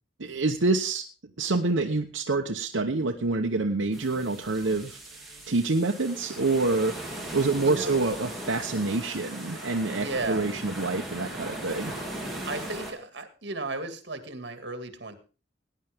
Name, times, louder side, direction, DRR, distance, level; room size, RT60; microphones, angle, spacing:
voice 1, 0.2-1.0 1.4-5.0 5.5-7.0 7.3-11.9, right 3 dB, 75° right, 3 dB, 1.0 m, -27 dB
Beach Pebble, 3.9-12.9, right 1 dB, ahead, 3.2 m, -38 dB
sound 1, 4.6-14.1, equal, 60° left, 7.9 m, -59 dB
voice 2, 7.6-8.0 10.0-10.5 12.5-15.1, right 2 dB, 60° right, 8 dB, 2.2 m, -35 dB
18.0 x 10.0 x 3.5 m, 0.35 s
head